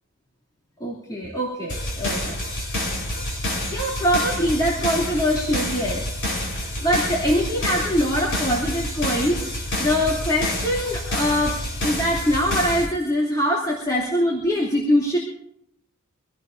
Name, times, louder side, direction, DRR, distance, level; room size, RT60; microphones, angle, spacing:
voice 1, 0.8-2.4 3.7-6.0 6.5-9.5 9.8-11.6 11.8-15.2, equal, 20° left, -5 dB, 2.9 m, -23 dB
sound 1, 1.7-12.9, left 1 dB, 60° left, 4.4 m, -28 dB
25.0 x 17.5 x 2.7 m, 0.76 s
head